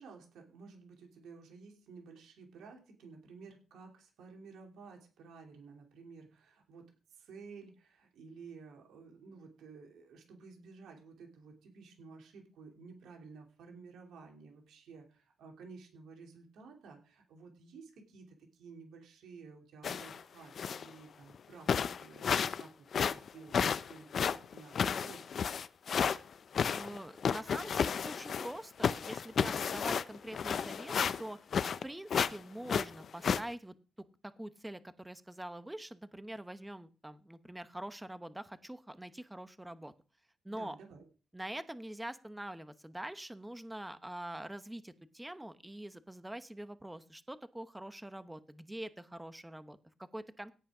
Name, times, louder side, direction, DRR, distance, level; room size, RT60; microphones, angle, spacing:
voice 1, 0.0-25.5 40.4-41.0, right 4 dB, 80° right, 1 dB, 2.9 m, -53 dB
sound 1, 19.8-20.2 20.6-20.9 21.3-21.4 21.7-22.6 22.9-26.2 26.5-28.6 28.8-31.8 32.1-32.4 32.7-33.4, left 7 dB, 60° left, 0.5 m, -32 dB
voice 2, 26.8-31.4 31.8-33.7 34.2-39.9 40.4-40.8 41.3-50.5, right 1 dB, 10° right, 11 dB, 1.1 m, -44 dB
17.0 x 5.7 x 5.0 m, 0.34 s
supercardioid pair, 60°, 0 cm